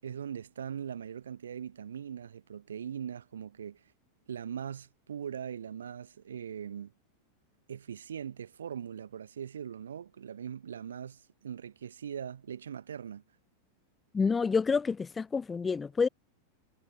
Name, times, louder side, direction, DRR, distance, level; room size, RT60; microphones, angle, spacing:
voice 1, 0.0-3.8 4.3-6.9 7.7-13.2, right 8 dB, 65° right, 6.8 m, -41 dB
voice 2, 14.1-16.1, left 5 dB, 15° left, 0.7 m, -28 dB
figure-of-eight pair, 90°, 0 cm